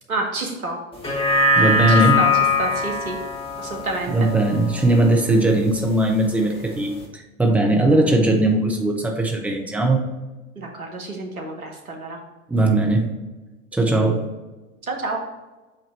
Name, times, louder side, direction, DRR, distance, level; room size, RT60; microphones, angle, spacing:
voice 1, 0.1-0.8 1.9-2.3 2.6-3.2 3.6-4.3 10.6-12.2 14.8-15.2, right 2 dB, 85° right, 2 dB, 1.3 m, -29 dB
sound 1, 0.9-5.5 5.9-6.0, left 3 dB, 15° left, 1.5 m, -22 dB
voice 2, 1.5-2.3 4.1-10.0 12.5-13.2 13.7-14.3, right 2 dB, 5° right, 1 dB, 0.9 m, -19 dB
8.2 x 2.9 x 4.3 m, 1.2 s
figure-of-eight pair, 90°, 42 cm